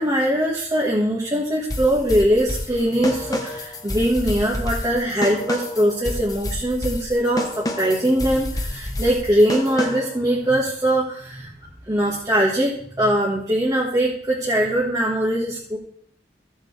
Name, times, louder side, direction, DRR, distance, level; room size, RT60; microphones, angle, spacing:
voice 1, 0.0-11.5 11.9-15.8, equal, 20° right, -5 dB, 1.6 m, -21 dB
sound 1, 1.7-10.2, left 1 dB, 20° left, 1.0 m, -29 dB
14.5 x 7.3 x 3.4 m, 0.63 s
head